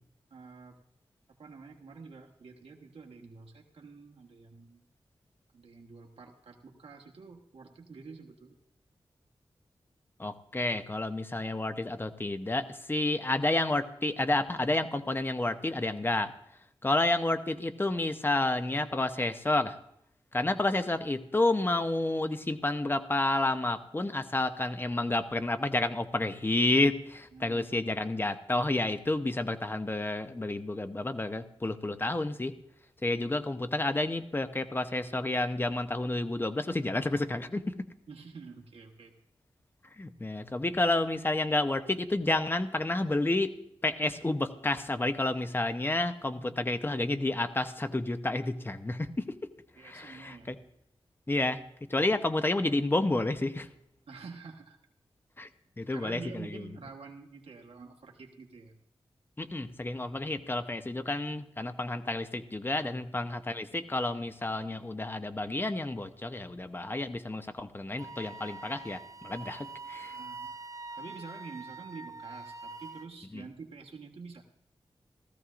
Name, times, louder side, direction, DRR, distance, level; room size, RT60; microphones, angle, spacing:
voice 1, 0.3-0.8 1.4-4.8 5.5-8.5 27.3-27.7 38.1-39.1 46.3-46.7 49.8-50.6 54.1-54.8 55.9-58.7 62.8-63.4 67.9-68.0 70.1-70.5 71.0-74.4, right 4 dB, 80° right, 1 dB, 1.3 m, -48 dB
voice 2, 10.2-16.3 16.8-19.7 20.3-32.5 33.0-37.7 40.0-43.5 43.8-49.5 49.8-50.6 51.3-53.7 55.4-55.5 55.8-56.7 59.4-70.2 73.3-73.4, left 2 dB, 20° left, 10 dB, 0.8 m, -30 dB
Wind instrument woodwind instrument, 68.0-73.1, right 3 dB, 35° right, 0.6 m, -44 dB
17.0 x 14.0 x 2.5 m, 0.76 s
wide cardioid pair, 80°, 10 cm